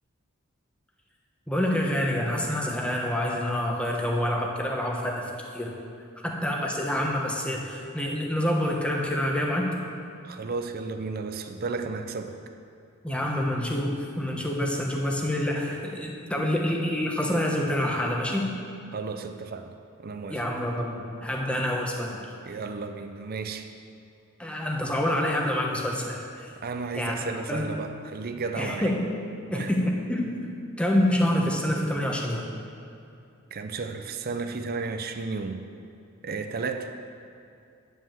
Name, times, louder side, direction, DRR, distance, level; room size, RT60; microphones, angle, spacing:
voice 1, 1.5-5.2 5.5-5.7 6.2-9.7 13.0-18.5 20.3-22.2 24.4-26.5 26.9-27.2 27.5-27.7 28.6-29.1 29.5-30.3 30.8-32.4, left 1 dB, 5° left, -1 dB, 1.0 m, -27 dB
voice 2, 10.2-12.4 18.9-19.7 20.0-20.4 22.4-23.7 26.6-28.9 29.5-29.7 33.5-35.7 36.2-36.9, right 4 dB, 45° right, 6 dB, 0.6 m, -33 dB
9.6 x 5.5 x 7.3 m, 2.5 s
head